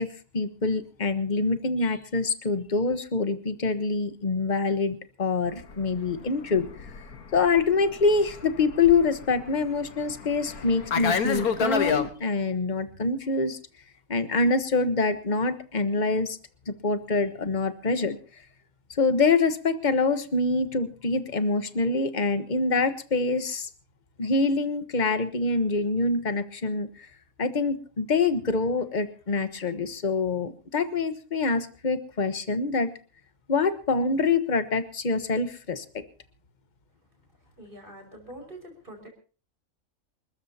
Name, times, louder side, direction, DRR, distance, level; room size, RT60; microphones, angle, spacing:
voice 1, 0.0-6.7 7.3-13.6 14.1-16.4 16.7-18.2 18.9-23.7 24.2-27.1 27.4-32.9 33.5-36.0, left 3 dB, 30° left, 10 dB, 1.3 m, -25 dB
Fixed-wing aircraft airplane, 5.6-12.1, left 5 dB, 80° left, 1.8 m, -30 dB
voice 2, 37.6-39.1, right 1 dB, 35° right, 3 dB, 5.9 m, -44 dB
28.0 x 14.0 x 2.9 m, 0.37 s
omnidirectional pair, 1.6 m